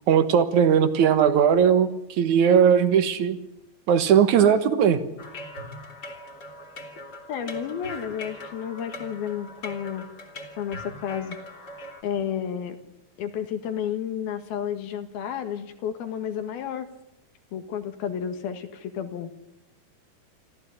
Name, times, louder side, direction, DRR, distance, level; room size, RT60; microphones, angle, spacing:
voice 1, 0.1-3.4 3.9-5.0, right 8 dB, 60° right, 10 dB, 2.3 m, -19 dB
sound 1, 5.2-12.0, left 1 dB, 30° left, 2.7 m, -41 dB
voice 2, 7.3-10.1 10.6-11.4 12.0-12.8 13.2-16.9 17.5-19.3, left 8 dB, 75° left, 7 dB, 3.6 m, -31 dB
27.0 x 14.5 x 9.9 m, 0.88 s
omnidirectional pair, 4.5 m